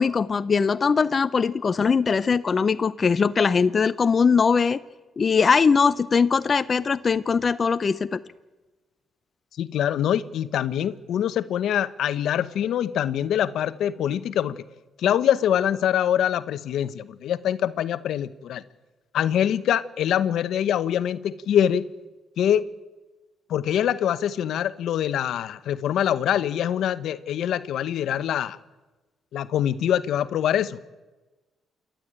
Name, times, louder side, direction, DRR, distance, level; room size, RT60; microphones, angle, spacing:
voice 1, 0.0-4.8 5.2-8.2, left 5 dB, 40° left, 13 dB, 0.6 m, -21 dB
voice 2, 9.6-14.6 15.0-18.6 19.1-21.9 22.4-22.7 23.5-28.6 29.3-30.8, left 10 dB, 75° left, 14 dB, 0.9 m, -24 dB
28.0 x 11.5 x 8.9 m, 1.2 s
cardioid pair, 90°, 0 cm